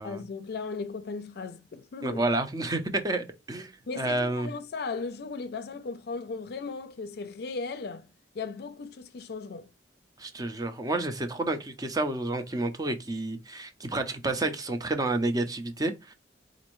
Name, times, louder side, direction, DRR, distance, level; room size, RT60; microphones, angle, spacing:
voice 1, 0.0-2.2 3.9-8.1 8.3-9.7, left 4 dB, 60° left, 0.4 m, -37 dB
voice 2, 2.0-3.7 4.0-4.5 10.2-16.1, right 2 dB, 20° right, 0.5 m, -30 dB
4.1 x 2.5 x 3.0 m
head